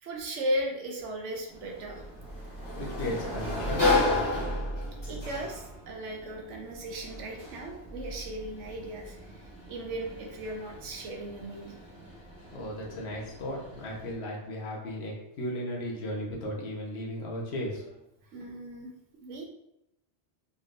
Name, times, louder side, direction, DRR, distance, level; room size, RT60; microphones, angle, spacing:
voice 1, 0.0-2.0 5.1-11.7 18.3-18.9 19.2-19.4, right 1 dB, 75° right, 1 dB, 1.2 m, -36 dB
Sliding door, 1.5-14.1, left 2 dB, 15° left, 1.3 m, -34 dB
voice 2, 2.8-3.9 12.5-17.9, left 1 dB, 60° left, -3 dB, 1.3 m, -35 dB
4.1 x 3.9 x 2.5 m, 0.84 s
omnidirectional pair, 1.2 m